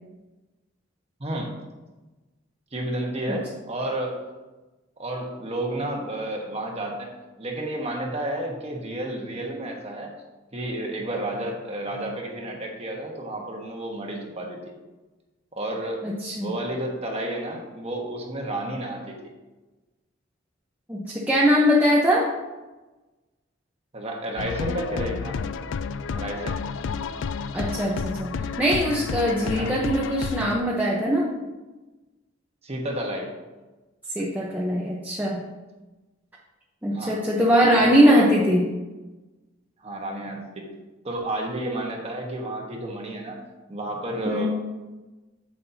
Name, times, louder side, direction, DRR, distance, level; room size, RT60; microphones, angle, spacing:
voice 1, 1.2-1.5 2.7-4.2 5.0-7.1 7.4-10.1 10.5-14.6 15.5-16.1 16.4-19.2 23.9-25.4 26.1-26.7 29.4-29.7 32.6-33.3 36.9-37.2 37.6-38.3 39.8-40.7 41.0-43.4 43.7-44.5, right 1 dB, 35° right, 0 dB, 1.4 m, -31 dB
voice 2, 16.0-16.5 20.9-22.3 27.5-31.3 34.1-35.4 36.8-38.6 44.2-44.5, equal, 10° right, -5 dB, 0.9 m, -21 dB
sound 1, 24.4-30.6, left 5 dB, 75° left, 0.4 m, -31 dB
9.6 x 7.5 x 2.9 m, 1.1 s
head